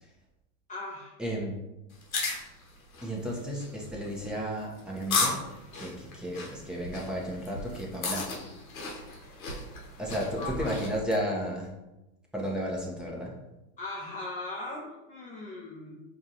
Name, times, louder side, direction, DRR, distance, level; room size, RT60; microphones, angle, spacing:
voice 1, 0.7-1.2 10.4-10.7 13.8-16.0, left 2 dB, 20° left, -4 dB, 0.6 m, -39 dB
voice 2, 1.2-1.6 3.0-5.4 5.7-8.3 9.0-9.1 10.0-11.7 12.3-13.3, equal, ahead, -4 dB, 0.9 m, -33 dB
sound 1, 1.9-11.0, left 3 dB, 85° left, 1.1 m, -35 dB
4.9 x 2.5 x 2.8 m, 0.98 s
hypercardioid pair, 100°, 41 cm